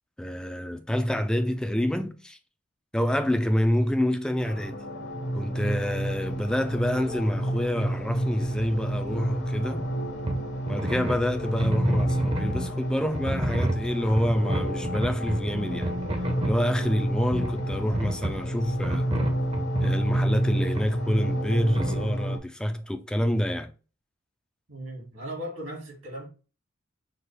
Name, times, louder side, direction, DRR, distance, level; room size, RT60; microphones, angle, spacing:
voice 1, 0.2-2.4 2.9-4.8 5.3-9.9 10.7-15.9 16.4-19.1 19.8-23.7, equal, 5° left, 0.3 m, -27 dB
sound 1, 4.4-22.4, right 1 dB, 55° left, 0.8 m, -30 dB
sound 2, 10.3-10.4 10.7-12.7 13.1-16.6 17.3-18.5 18.8-20.2 20.8-20.9 21.8-22.0, right 1 dB, 25° right, 0.7 m, -30 dB
voice 2, 24.7-26.3, equal, 75° right, 2.6 m, -37 dB
5.9 x 2.4 x 3.4 m
head